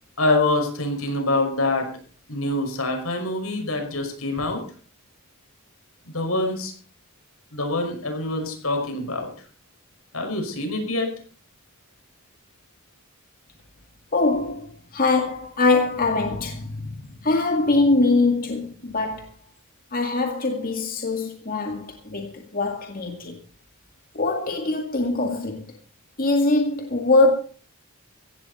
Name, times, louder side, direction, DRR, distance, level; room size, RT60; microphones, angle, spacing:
voice 1, 0.2-1.9 2.3-4.6 6.0-6.7 7.5-9.3 10.1-11.1, left 2 dB, 80° left, 5.8 m, -25 dB
voice 2, 14.1-17.0 17.2-19.3 19.9-23.4 24.1-25.7 26.2-27.3, left 3 dB, 40° left, 2.0 m, -22 dB
16.0 x 15.5 x 4.2 m
head